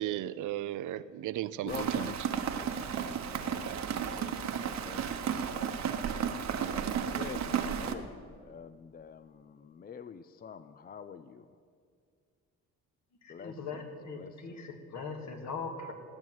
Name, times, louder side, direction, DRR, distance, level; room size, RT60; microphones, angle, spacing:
voice 1, 0.0-2.1, right 13 dB, 80° right, 15 dB, 0.6 m, -35 dB
voice 2, 1.6-2.2 3.4-4.5 4.8-5.1 5.5-5.8 7.1-11.5 13.3-13.8 14.2-14.6, left 6 dB, 30° left, 12 dB, 0.5 m, -46 dB
Rain, 1.7-7.9, right 7 dB, 65° right, 1.1 m, -33 dB
voice 3, 13.2-15.9, left 4 dB, 65° left, 4 dB, 2.2 m, -40 dB
17.5 x 6.3 x 9.2 m, 2.2 s
cardioid pair, 90°, 30 cm